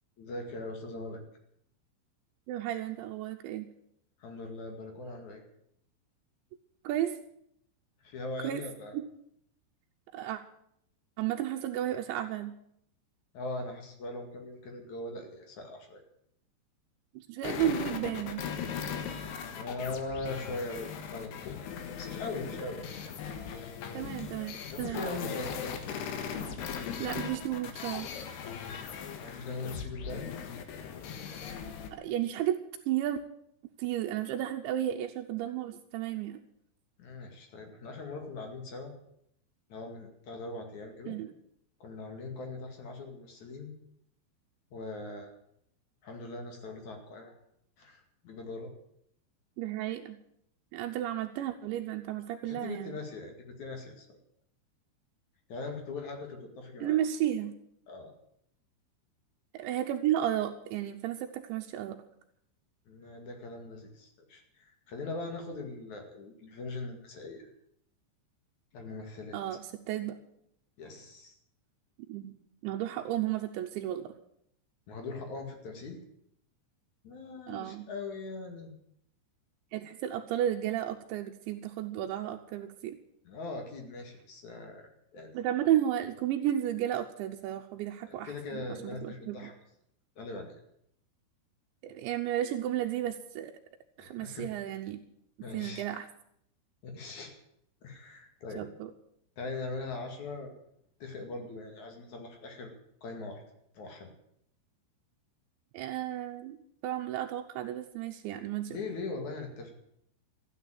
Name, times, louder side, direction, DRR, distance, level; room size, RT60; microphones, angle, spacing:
voice 1, 0.2-1.2 4.2-5.4 8.0-9.0 13.3-16.0 19.5-23.0 23.4-23.7 24.7-25.7 29.2-30.3 37.0-38.9 39.7-41.2 41.8-43.7 44.7-45.3 46.0-47.3 47.8-48.7 52.4-54.2 55.5-57.0 57.9-58.1 62.9-67.5 68.7-69.4 70.8-71.4 74.9-76.0 77.0-78.7 83.2-85.4 88.1-89.5 90.2-90.6 94.0-94.5 95.4-95.8 96.8-97.3 97.8-98.7 99.4-100.5 101.0-102.7 103.0-103.4 103.7-104.1 108.7-109.7, left 3 dB, 50° left, 4 dB, 3.1 m, -41 dB
voice 2, 2.5-3.7 6.8-7.2 8.4-8.6 8.9-9.0 10.1-10.4 11.2-12.5 17.1-18.5 23.9-25.0 27.0-28.1 31.9-32.6 32.9-33.2 33.8-36.4 41.1-41.3 49.6-50.2 50.7-53.0 56.8-57.5 59.5-62.0 69.3-70.2 72.1-72.3 72.6-74.1 77.5-77.9 79.7-83.0 85.3-89.5 91.8-93.5 94.0-95.0 95.5-96.1 98.6-98.9 105.7-106.6 106.8-108.8, right 12 dB, 80° right, 3 dB, 3.0 m, -33 dB
sound 1, 17.4-31.9, left 7 dB, 70° left, 3.3 m, -39 dB
14.5 x 9.4 x 9.1 m, 0.73 s
omnidirectional pair, 5.3 m